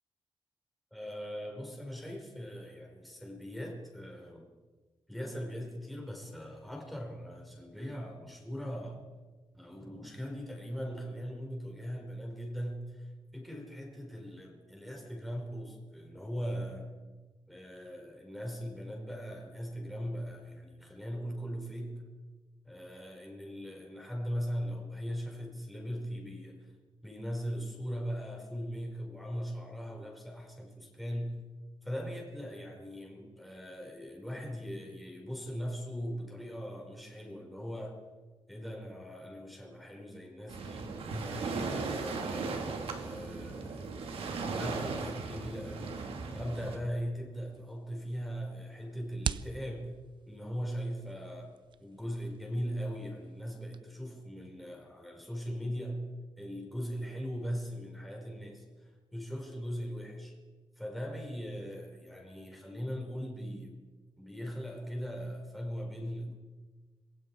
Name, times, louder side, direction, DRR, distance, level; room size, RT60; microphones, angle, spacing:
voice 1, 0.9-4.5 5.1-9.0 9.5-16.9 17.5-22.1 22.6-26.7 27.0-31.4 31.8-38.0 38.5-41.0 41.2-43.9 44.4-46.0 46.3-49.9 50.3-51.5 51.8-56.0 56.4-60.4 60.8-63.7 64.2-66.3, equal, ahead, 0 dB, 4.8 m, -40 dB
Waves surf, 40.5-46.8, right 4 dB, 85° right, 3.0 m, -37 dB
sound 1, 47.5-53.8, right 8 dB, 55° right, 0.6 m, -44 dB
26.5 x 22.0 x 4.8 m, 1.3 s
wide cardioid pair, 145°, 10 cm